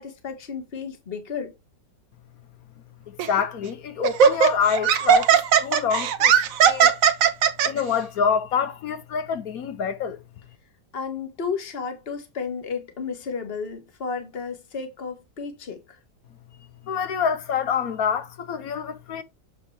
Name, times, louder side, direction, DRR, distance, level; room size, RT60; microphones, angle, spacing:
voice 1, 0.0-1.5 10.9-15.8, left 5 dB, 35° left, 1.6 m, -32 dB
voice 2, 3.1-6.3 6.6-6.9 7.6-10.2 16.9-19.2, left 7 dB, 60° left, 1.1 m, -26 dB
Laughter, 3.2-3.4 4.0-7.7, right 8 dB, 60° right, 1.1 m, -18 dB
7.0 x 5.3 x 3.4 m
omnidirectional pair, 1.9 m